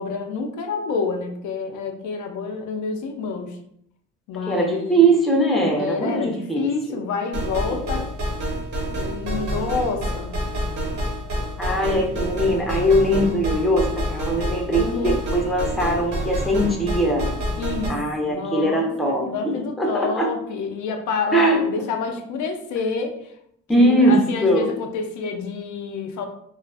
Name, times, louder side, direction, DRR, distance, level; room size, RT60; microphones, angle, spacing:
voice 1, 0.0-3.6 4.3-5.0 5.8-8.1 8.9-10.3 14.8-15.2 17.6-23.3 23.7-26.3, left 4 dB, 75° left, 4 dB, 0.5 m, -28 dB
voice 2, 4.5-7.0 7.9-8.0 11.6-17.3 17.9-20.3 21.3-21.6 23.7-24.7, right 1 dB, ahead, -1 dB, 0.5 m, -21 dB
sound 1, 7.3-17.9, equal, 65° right, 1.1 m, -28 dB
2.4 x 2.4 x 2.3 m, 0.70 s
cardioid pair, 90°, 30 cm